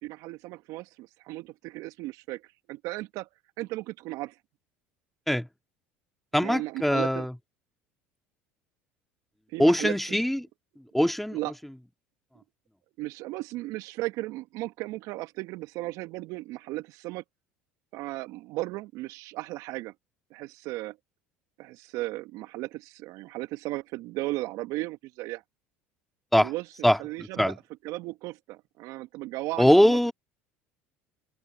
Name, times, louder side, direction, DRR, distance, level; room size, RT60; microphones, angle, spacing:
voice 1, 0.0-2.4 2.7-3.3 3.6-4.4 6.4-7.3 9.5-10.2 11.3-11.5 13.0-17.2 17.9-19.9 20.3-21.0 21.6-25.4 26.4-30.0, right 19 dB, 65° right, 1.2 m, -36 dB
voice 2, 6.3-7.3 9.6-10.4 10.9-11.4 26.3-26.5 26.8-27.0 27.4-27.6 29.6-30.1, equal, 5° left, 1.9 m, -21 dB
hypercardioid pair, 75°, 6 cm